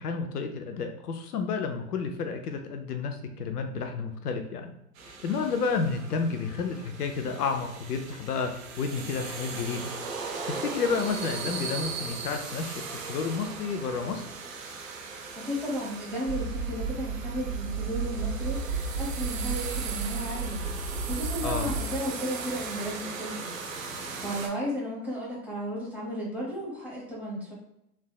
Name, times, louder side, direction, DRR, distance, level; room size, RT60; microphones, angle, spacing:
voice 1, 0.0-4.7 5.1-8.5 8.8-9.9 10.5-12.7 13.1-14.2 21.4-21.7, left 5 dB, 75° left, 6 dB, 0.6 m, -31 dB
sound 1, 5.0-24.5, right 4 dB, 55° right, 0.8 m, -38 dB
voice 2, 15.3-20.6 21.0-23.5 23.8-27.5, equal, 5° right, -7 dB, 1.1 m, -34 dB
sound 2, 16.3-22.0, right 4 dB, 35° right, 1.0 m, -33 dB
3.2 x 2.5 x 2.3 m, 0.82 s
hypercardioid pair, 105°, 47 cm